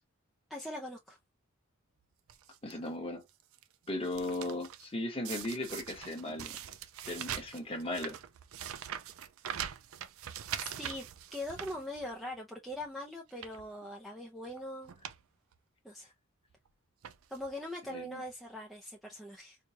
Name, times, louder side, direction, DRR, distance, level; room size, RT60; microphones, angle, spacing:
voice 1, 0.5-1.2 10.6-14.9 15.8-16.1 17.3-19.6, left 1 dB, ahead, 0.5 m, -42 dB
sound 1, 2.3-2.7 3.3-4.9 5.2-12.3 12.7-12.9 13.3-13.7 14.5-14.6 14.8-15.2 15.5-15.6 16.5-16.7 17.0-17.5 18.3-18.4 18.6-18.7, right 9 dB, 75° right, 0.5 m, -43 dB
voice 2, 2.6-3.2 3.9-6.5 7.1-8.2 17.9-18.2, left 1 dB, 25° left, 1.1 m, -37 dB
4.5 x 2.3 x 2.7 m
head